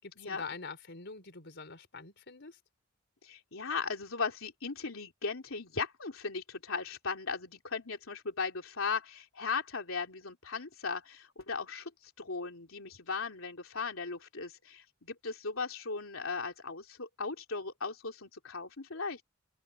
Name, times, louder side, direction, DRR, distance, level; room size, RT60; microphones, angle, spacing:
voice 1, 0.0-2.6, left 4 dB, 60° left, 4.4 m, -44 dB
voice 2, 3.2-19.2, left 4 dB, 80° left, 3.1 m, -37 dB
open air
head